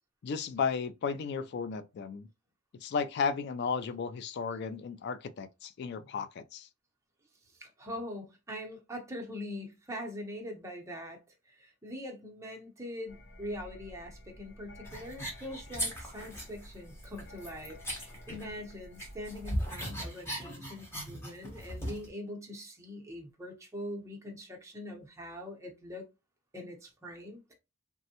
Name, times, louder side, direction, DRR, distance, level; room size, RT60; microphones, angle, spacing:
voice 1, 0.2-2.3 2.8-6.7, left 5 dB, 55° left, 0.3 m, -34 dB
voice 2, 7.5-11.2 11.5-26.0 26.5-27.5, left 1 dB, 15° right, 0.7 m, -43 dB
sound 1, 13.1-19.5, left 1 dB, 75° left, 1.3 m, -51 dB
sound 2, 14.8-16.7 17.0-18.7 19.0-22.1, equal, 15° left, 0.9 m, -38 dB
3.4 x 2.1 x 2.7 m
head